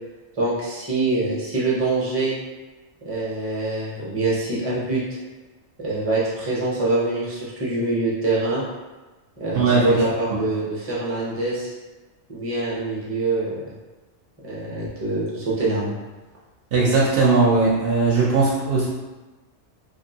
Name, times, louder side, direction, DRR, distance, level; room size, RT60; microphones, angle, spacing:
voice 1, 0.3-2.3 3.0-5.2 5.8-8.6 9.4-11.7 12.3-13.7 14.4-15.9, right 2 dB, 15° right, -7 dB, 0.5 m, -24 dB
voice 2, 9.5-10.0 16.7-18.9, right 3 dB, 60° right, -5 dB, 0.7 m, -19 dB
2.7 x 2.6 x 2.7 m, 1.2 s
omnidirectional pair, 1.2 m